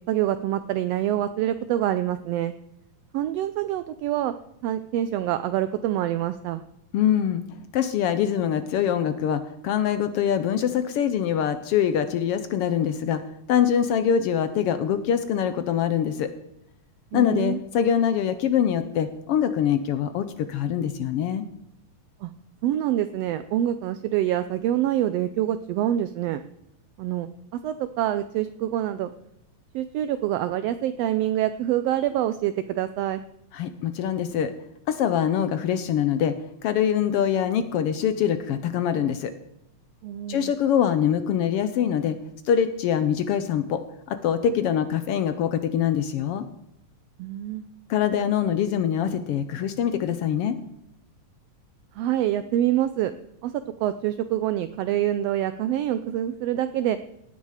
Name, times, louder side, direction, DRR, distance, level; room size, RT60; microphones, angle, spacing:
voice 1, 0.1-2.5 3.1-4.3 4.6-6.6 17.1-17.6 22.2-22.3 22.6-26.4 27.0-27.3 27.6-29.1 29.7-33.2 40.0-40.5 47.2-47.6 52.0-53.1 53.4-57.0, right 12 dB, 80° right, 11 dB, 1.4 m, -26 dB
voice 2, 6.9-7.4 7.7-13.2 13.5-16.3 17.1-21.4 33.5-34.5 34.9-36.3 36.6-39.3 40.3-42.2 42.4-46.5 47.9-50.6, left 9 dB, 75° left, 11 dB, 1.3 m, -24 dB
17.0 x 9.7 x 4.9 m, 0.83 s
omnidirectional pair, 3.4 m